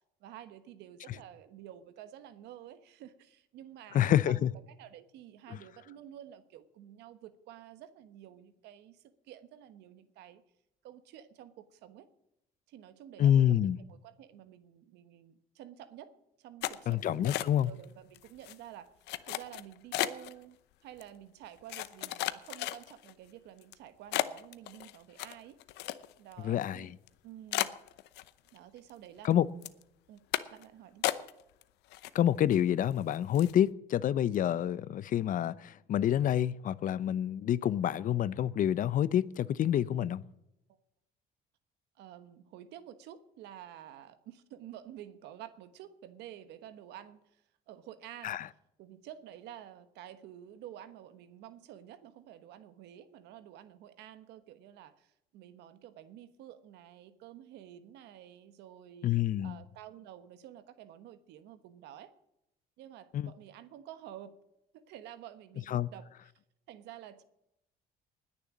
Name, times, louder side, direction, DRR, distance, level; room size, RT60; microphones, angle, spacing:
voice 1, 0.2-10.4 10.8-12.1 12.7-16.1 16.4-17.4 17.6-18.9 19.2-20.6 20.8-25.6 26.2-26.9 27.2-27.7 28.5-29.7 30.1-30.2 30.5-31.1 42.0-48.4 48.8-62.1 62.8-64.3 64.7-66.3 66.7-67.2, right 11 dB, 85° right, 1.3 m, -50 dB
voice 2, 3.9-4.5 5.5-5.6 13.2-13.8 16.9-17.7 26.4-26.9 29.2-29.5 32.1-40.2 48.2-48.5 59.0-59.6 63.1-63.3 65.7-65.9, left 11 dB, 55° left, 0.7 m, -28 dB
sound 1, 16.6-17.8 18.1-18.6 19.1-20.3 21.0-21.1 21.7-23.1 23.6-23.7 24.1-26.3 26.6-26.7 27.1-27.2 27.5-28.6 28.9-29.3 29.6-29.8 30.3-30.6 31.0-31.6 31.9-32.5 32.9-33.0 33.3-33.6, left 16 dB, 85° left, 0.8 m, -34 dB
20.0 x 6.9 x 7.2 m
cardioid pair, 110°, 17 cm